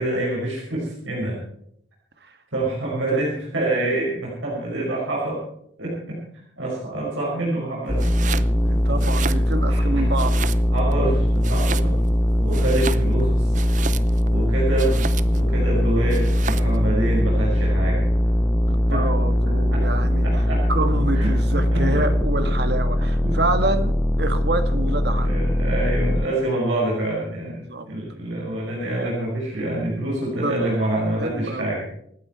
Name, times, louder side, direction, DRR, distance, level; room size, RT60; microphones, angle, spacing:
voice 1, 0.0-1.4 2.5-5.4 5.8-6.2 6.6-8.3 8.7-9.3 9.6-10.0 10.7-12.0 12.4-13.6 14.3-18.1 18.9-20.7 21.1-21.3 21.7-22.1 23.0-23.4 25.2-31.9, right 1 dB, 80° right, -4 dB, 5.5 m, -27 dB
sound 1, 7.9-26.3, left 1 dB, 15° left, 0.5 m, -21 dB
Domestic sounds home sounds, 7.9-8.5 8.9-9.8 10.1-10.9 11.4-12.2 12.5-14.3 14.8-15.5 16.1-16.8, right 6 dB, 40° right, 0.5 m, -33 dB
voice 2, 8.5-10.4 18.7-20.4 20.7-25.4 27.7-27.9 30.4-30.6 31.2-31.7, right 2 dB, 55° right, 8 dB, 1.6 m, -27 dB
27.0 x 9.3 x 4.6 m, 0.72 s
head